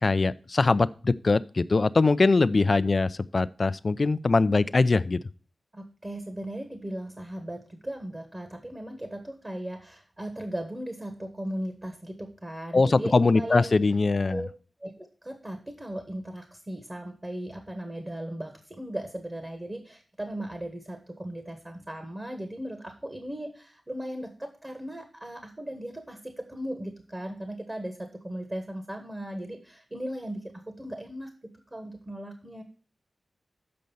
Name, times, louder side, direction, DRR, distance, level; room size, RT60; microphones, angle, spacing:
voice 1, 0.0-5.2 12.7-14.5, left 3 dB, 50° left, 16 dB, 0.4 m, -22 dB
voice 2, 5.7-13.7 14.3-14.5 14.8-31.3 31.7-32.6, right 1 dB, 25° right, 6 dB, 1.5 m, -37 dB
7.7 x 5.3 x 7.0 m, 0.38 s
wide cardioid pair, 65°, 0 cm